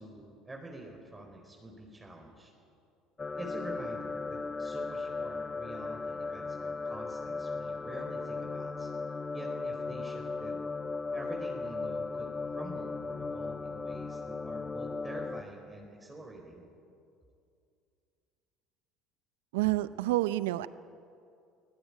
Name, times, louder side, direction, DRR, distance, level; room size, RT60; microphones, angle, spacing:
voice 1, 0.0-2.5 3.4-8.9 9.3-10.6 11.1-16.6, right 1 dB, 15° right, 1 dB, 4.4 m, -46 dB
sound 1, 3.2-15.4, left 4 dB, 25° left, 1.1 m, -37 dB
voice 2, 19.5-20.7, right 17 dB, 80° right, 16 dB, 0.6 m, -28 dB
23.0 x 16.5 x 9.8 m, 2.4 s
hypercardioid pair, 70°, 0 cm